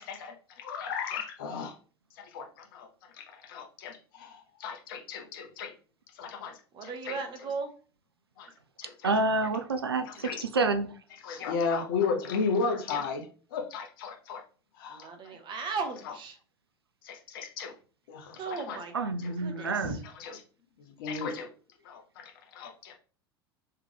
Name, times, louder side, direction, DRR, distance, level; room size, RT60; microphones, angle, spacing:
voice 1, 0.0-1.7 2.2-2.9 3.2-5.7 6.2-7.1 8.4-8.5 8.8-9.1 9.7-10.4 11.2-13.3 13.5-14.4 14.8-15.1 17.0-17.7 18.1-18.8 20.2-20.4 21.0-21.5 21.8-22.9, left 5 dB, 60° left, 0.9 m, -34 dB
voice 2, 6.7-7.7 14.9-16.4 18.3-18.9 19.4-20.0, right 4 dB, 40° right, 1.0 m, -36 dB
voice 3, 9.0-11.0 18.9-20.0, right 3 dB, 80° right, 0.4 m, -28 dB
3.4 x 3.3 x 3.4 m
figure-of-eight pair, 70°, 13 cm